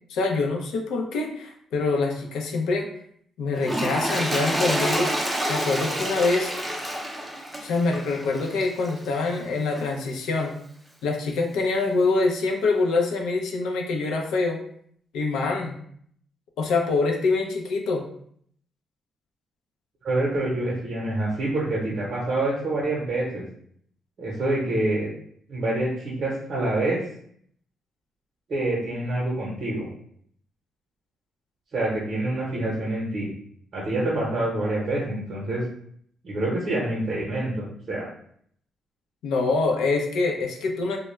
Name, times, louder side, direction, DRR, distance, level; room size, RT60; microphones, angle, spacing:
voice 1, 0.1-2.9 3.4-5.1 5.5-6.5 7.6-10.5 11.0-14.6 15.1-15.8 16.6-18.0 39.2-41.0, left 3 dB, 85° left, 1 dB, 0.5 m, -25 dB
Toilet flush, 3.6-9.1 9.7-9.9, right 1 dB, 10° right, 0.5 m, -28 dB
voice 2, 20.0-23.4 24.2-25.1 25.5-27.0 28.5-29.9 31.7-33.3 33.7-35.6 36.2-38.1, right 2 dB, 50° right, -5 dB, 0.7 m, -26 dB
2.3 x 2.0 x 3.1 m, 0.64 s
cardioid pair, 90°, 0 cm